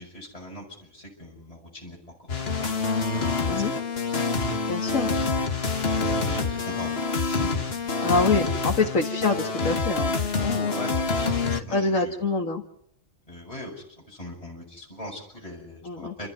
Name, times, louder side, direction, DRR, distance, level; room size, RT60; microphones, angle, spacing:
voice 1, 0.0-2.0 2.2-3.7 4.9-5.5 6.0-8.1 10.7-12.1 13.3-16.3, left 1 dB, 25° left, -2 dB, 6.5 m, -40 dB
sound 1, 2.3-11.6, left 4 dB, 55° left, 1.7 m, -26 dB
voice 2, 4.7-5.1 8.0-10.8 11.5-12.6 15.8-16.1, left 3 dB, 90° left, 1 dB, 2.2 m, -26 dB
30.0 x 14.0 x 9.5 m, 0.71 s
omnidirectional pair, 1.3 m